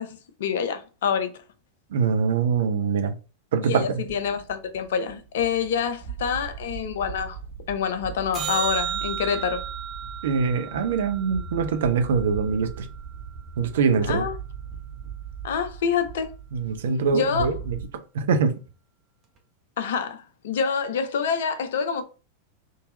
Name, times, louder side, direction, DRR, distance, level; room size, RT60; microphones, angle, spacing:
voice 1, 0.0-1.3 3.6-7.4 7.7-9.7 14.0-14.4 15.4-16.3 17.1-17.6 19.8-22.0, left 7 dB, 60° left, 0.6 m, -27 dB
voice 2, 1.9-3.2 3.5-3.9 10.2-12.9 13.6-14.2 16.5-18.5, right 5 dB, 60° right, 0.6 m, -23 dB
sound 1, 4.0-17.9, right 7 dB, 45° right, 1.2 m, -39 dB
sound 2, 8.3-12.8 19.4-19.5, right 9 dB, 25° right, 0.9 m, -34 dB
3.7 x 2.8 x 4.0 m
figure-of-eight pair, 90°, 0 cm